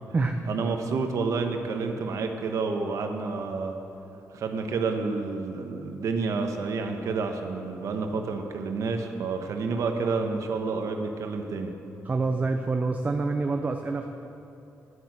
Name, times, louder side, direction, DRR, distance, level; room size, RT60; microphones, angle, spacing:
voice 1, 0.5-3.7 4.3-11.7, right 4 dB, 70° right, 4 dB, 1.1 m, -29 dB
voice 2, 12.0-14.1, right 3 dB, 30° right, 5 dB, 0.6 m, -26 dB
10.0 x 8.9 x 8.1 m, 2.8 s
cardioid pair, 125°, 6 cm